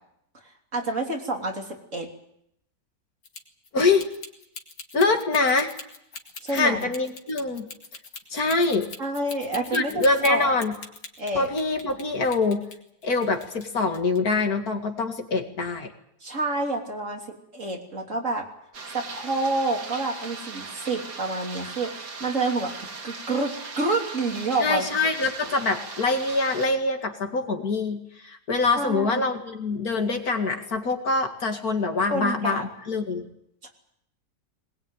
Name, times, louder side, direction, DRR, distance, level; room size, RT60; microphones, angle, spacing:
voice 1, 0.7-2.1 6.4-6.9 9.0-9.9 10.2-10.5 11.2-11.5 16.2-18.4 18.9-24.9 28.8-29.3 32.1-32.6 33.6-33.7, right 2 dB, 50° right, 2 dB, 3.6 m, -28 dB
sound 1, 3.2-12.0 12.3-13.7 13.9-14.2, left 4 dB, 85° left, 2.8 m, -41 dB
voice 2, 3.7-4.1 4.9-5.7 6.5-7.7 8.3-8.9 9.7-10.8 11.3-12.7 13.0-15.9 24.6-33.3, left 3 dB, 60° left, 5 dB, 2.6 m, -24 dB
sound 2, 18.7-26.7, right 4 dB, 80° right, 2.8 m, -39 dB
21.0 x 20.5 x 9.1 m, 0.76 s
omnidirectional pair, 1.8 m